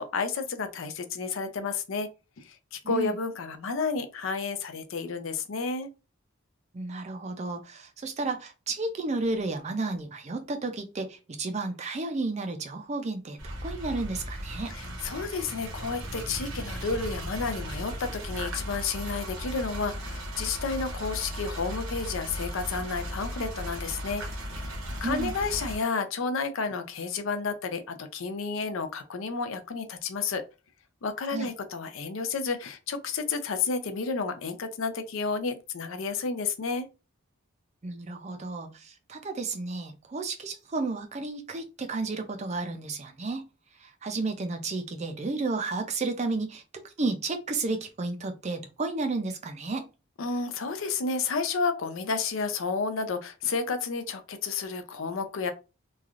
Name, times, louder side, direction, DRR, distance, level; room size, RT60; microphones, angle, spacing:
voice 1, 0.0-2.1 2.4-5.9 14.7-24.2 25.0-30.4 31.0-36.9 50.2-55.5, left 4 dB, 70° left, 0.5 m, -31 dB
voice 2, 2.8-3.2 6.7-14.7 25.0-25.3 31.3-31.5 37.8-43.5 43.8-49.9, right 3 dB, 30° right, 0.4 m, -32 dB
sound 1, 13.4-25.8, equal, 75° right, 0.9 m, -36 dB
3.1 x 2.4 x 2.4 m
head